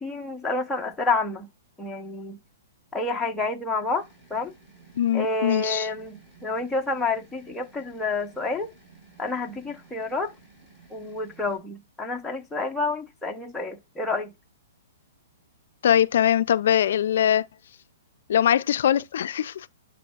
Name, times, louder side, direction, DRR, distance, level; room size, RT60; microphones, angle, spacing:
voice 1, 0.0-1.5 1.8-2.4 2.9-4.5 5.1-8.7 9.2-10.3 10.9-14.3, left 3 dB, 5° left, 0.8 m, -29 dB
sound 1, 3.9-11.6, right 4 dB, 20° right, 5.4 m, -54 dB
voice 2, 5.0-5.9 15.8-17.4 18.3-19.7, left 10 dB, 60° left, 0.4 m, -22 dB
10.0 x 6.1 x 2.4 m
hypercardioid pair, 160°, 0 cm